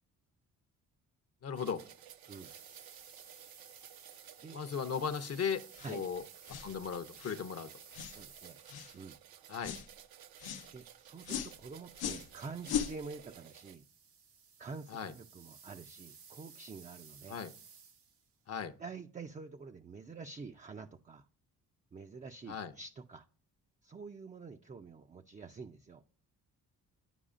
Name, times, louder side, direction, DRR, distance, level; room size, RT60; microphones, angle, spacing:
voice 1, 1.4-1.8 4.5-5.6 5.9-6.2 6.5-7.7 9.5-9.7 14.9-15.1 17.3-17.5 18.5-18.7 22.5-22.7, left 6 dB, 40° left, 0.7 m, -36 dB
sound 1, 1.5-13.8, right 10 dB, 75° right, 0.6 m, -56 dB
sound 2, 2.1-9.1 11.0-18.3, right 6 dB, 90° right, 1.2 m, -57 dB
sound 3, 5.8-6.0 6.5-6.7 7.2-7.4 7.9-8.2 8.7-8.9 9.6-9.9 10.4-10.7 11.2-11.5 12.0-12.3 12.6-12.9, left 8 dB, 85° left, 0.8 m, -38 dB
voice 2, 8.1-8.6 8.9-9.2 10.7-13.8 14.6-17.4 18.8-21.3 21.9-23.2 23.8-26.0, right 4 dB, 20° right, 0.4 m, -47 dB
9.9 x 4.8 x 2.5 m
cardioid pair, 65°, 37 cm